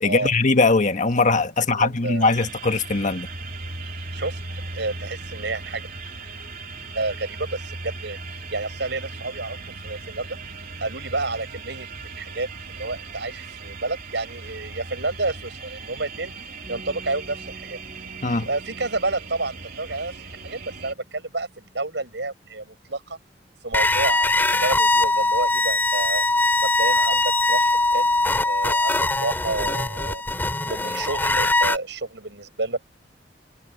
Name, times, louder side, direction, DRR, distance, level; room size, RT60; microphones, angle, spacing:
voice 1, 0.0-3.3 18.2-18.5, left 3 dB, 45° left, 1.4 m, -20 dB
voice 2, 1.7-2.4 4.1-4.4 4.7-5.9 6.9-8.2 8.5-9.6 9.8-10.4 10.8-16.3 16.7-17.8 18.4-20.2 20.4-23.2 23.6-26.2 26.6-28.1 28.4-30.2 30.6-32.9, right 2 dB, 75° right, 7.6 m, -30 dB
sound 1, 2.2-20.9, right 3 dB, 55° right, 2.9 m, -38 dB
Piano, 16.6-23.9, right 1 dB, 20° right, 3.0 m, -50 dB
sound 2, 23.7-31.8, left 2 dB, 10° left, 2.8 m, -21 dB
head